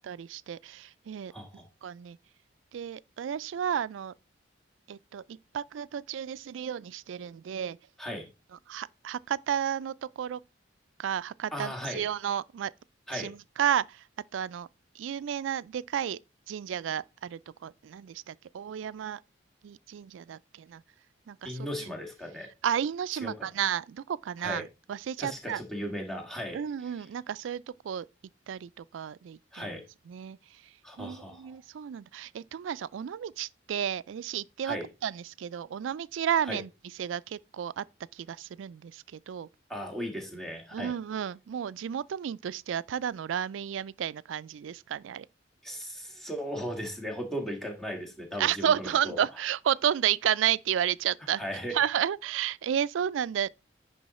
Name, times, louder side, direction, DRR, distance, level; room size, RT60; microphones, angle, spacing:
voice 1, 0.0-1.3 1.8-2.2 2.7-4.1 4.9-7.8 8.7-10.4 11.0-12.7 13.1-14.0 14.3-14.7 15.0-16.2 16.5-19.2 19.6-20.8 21.3-21.9 22.6-25.6 26.5-28.1 28.5-29.8 30.1-30.4 31.0-34.8 35.0-36.7 37.0-37.8 38.1-39.5 40.7-45.3 48.4-51.4 51.7-53.5, right 9 dB, 90° right, 0.3 m, -32 dB
voice 2, 1.3-1.7 8.0-8.3 11.5-12.0 13.1-13.3 21.4-22.5 23.2-23.5 24.4-24.6 25.2-26.6 29.5-29.8 30.8-31.6 34.6-34.8 36.4-36.6 39.7-40.9 45.6-49.2 51.4-51.7, equal, ahead, 1.7 m, -37 dB
10.0 x 3.9 x 4.1 m
head